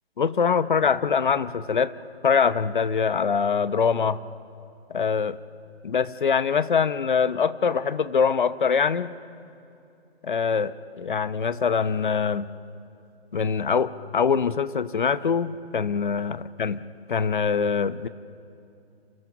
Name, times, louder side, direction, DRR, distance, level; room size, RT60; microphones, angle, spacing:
voice 1, 0.2-1.9 2.2-4.2 4.9-5.4 5.8-9.1 10.2-12.5 13.3-16.8 17.1-18.1, left 6 dB, 50° left, 15 dB, 0.9 m, -23 dB
27.5 x 27.0 x 6.0 m, 2.6 s
hypercardioid pair, 170°, 32 cm